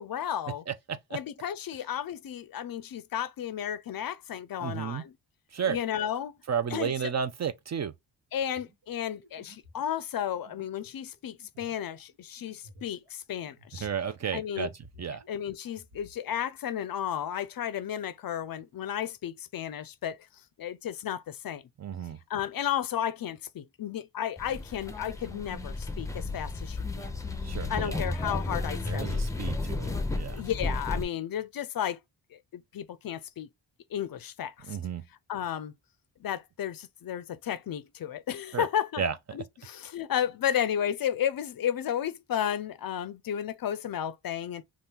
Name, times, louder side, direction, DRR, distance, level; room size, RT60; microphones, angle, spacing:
voice 1, 0.0-0.6 1.1-5.2 5.7-6.4 6.7-7.1 8.3-13.9 14.3-14.7 15.3-20.2 20.6-21.6 22.3-27.1 27.7-29.2 30.3-32.0 32.3-33.5 33.9-34.8 35.3-35.7 36.2-39.0 39.3-44.6, left 10 dB, 50° left, 0.5 m, -33 dB
voice 2, 0.7-1.0 4.6-5.0 5.5-5.8 6.5-7.9 13.8-14.7 15.0-15.2 21.8-22.2 27.5-28.0 28.9-30.4 34.7-35.0 38.5-38.7 39.0-39.1, right 7 dB, 40° right, 0.4 m, -32 dB
sound 1, 8.5-14.3 14.6-16.2, equal, 80° right, 1.3 m, -56 dB
sound 2, 24.4-31.0, left 2 dB, 5° left, 0.6 m, -33 dB
2.7 x 2.4 x 3.5 m
supercardioid pair, 45°, 45 cm